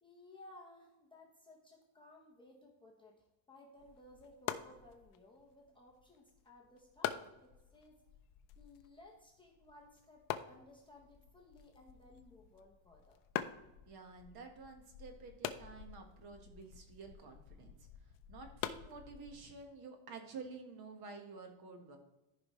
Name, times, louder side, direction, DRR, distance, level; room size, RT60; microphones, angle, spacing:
voice 1, 0.0-8.0 8.6-13.2, left 2 dB, 10° left, -2 dB, 0.8 m, -59 dB
sound 1, 3.8-19.6, left 11 dB, 45° left, 0.5 m, -47 dB
voice 2, 13.9-17.9 18.3-22.0, right 4 dB, 50° right, 5 dB, 1.4 m, -51 dB
14.0 x 5.1 x 3.1 m, 0.98 s
cardioid pair, 180°, 49 cm